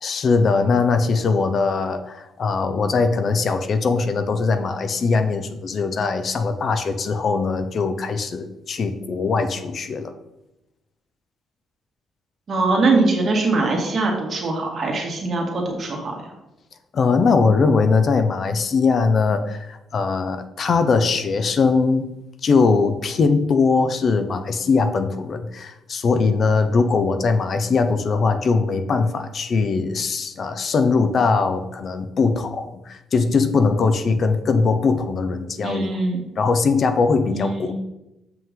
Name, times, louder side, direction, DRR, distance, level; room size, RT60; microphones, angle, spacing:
voice 1, 0.0-10.1 16.9-22.1 22.4-36.0 36.4-37.7, left 4 dB, 50° left, 9 dB, 0.7 m, -21 dB
voice 2, 12.5-16.2 35.6-36.2 37.3-37.7, right 3 dB, 45° right, 0 dB, 2.1 m, -22 dB
7.3 x 5.6 x 3.8 m, 0.92 s
cardioid pair, 90°, 0 cm